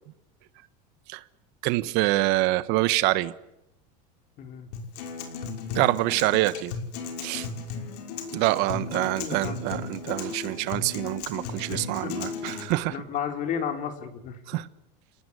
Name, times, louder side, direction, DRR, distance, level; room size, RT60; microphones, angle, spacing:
voice 1, 1.6-3.3 5.7-6.7 7.2-7.5 8.3-13.0 14.5-14.7, right 18 dB, 55° right, 1.3 m, -26 dB
voice 2, 4.4-4.7 8.8-9.6 11.7-12.1 12.8-14.4, left 8 dB, 40° left, 3.7 m, -33 dB
Acoustic guitar, 4.7-12.7, left 5 dB, 75° left, 5.7 m, -35 dB
29.5 x 19.0 x 9.9 m
supercardioid pair, 145°, 20 cm